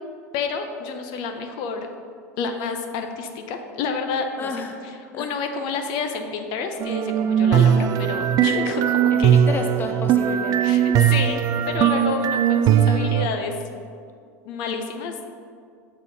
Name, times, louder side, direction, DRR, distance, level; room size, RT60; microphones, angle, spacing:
voice 1, 0.3-1.9 2.4-4.5 4.8-9.4 10.6-11.4 11.6-13.5 14.4-15.1, left 5 dB, 60° left, 5 dB, 0.7 m, -29 dB
voice 2, 4.4-4.8 5.1-5.3 9.1-10.6, left 3 dB, 25° left, 4 dB, 0.5 m, -31 dB
sound 1, 6.8-13.3, right 9 dB, 45° right, 0.4 m, -19 dB
6.4 x 4.2 x 5.3 m, 2.2 s
hypercardioid pair, 85°, 8 cm